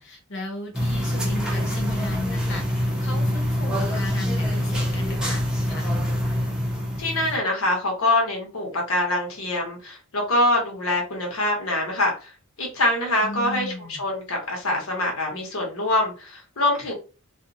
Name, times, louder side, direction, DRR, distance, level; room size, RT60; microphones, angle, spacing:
voice 1, 0.0-6.0 13.2-14.0, left 1 dB, 60° left, 2 dB, 0.9 m, -36 dB
sound 1, 0.7-7.4, equal, 5° right, 0.6 m, -25 dB
voice 2, 7.0-12.3 12.6-16.9, left 1 dB, 80° left, 0 dB, 1.1 m, -24 dB
2.6 x 2.1 x 2.6 m, 0.34 s
head